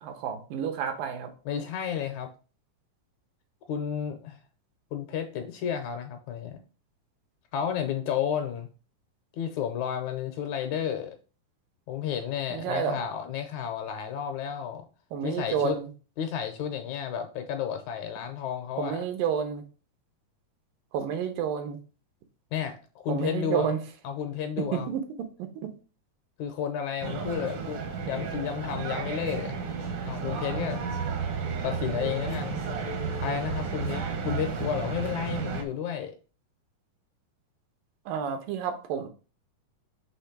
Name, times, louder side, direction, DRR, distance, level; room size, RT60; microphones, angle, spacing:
voice 1, 0.0-1.3 12.5-13.0 15.1-15.9 18.8-19.6 20.9-21.8 23.1-23.8 24.6-25.7 38.1-39.1, right 7 dB, 85° right, 2.7 m, -30 dB
voice 2, 1.5-2.3 3.7-4.4 4.9-6.6 7.5-8.7 9.4-11.2 11.9-14.9 15.2-15.8 16.2-19.0 22.5-23.7 24.0-24.9 26.4-27.8 28.1-29.5 30.1-30.8 31.6-32.6 33.2-36.1, left 8 dB, 75° left, 1.8 m, -32 dB
sound 1, 27.0-35.6, right 5 dB, 70° right, 1.3 m, -32 dB
6.4 x 3.0 x 5.8 m
omnidirectional pair, 3.8 m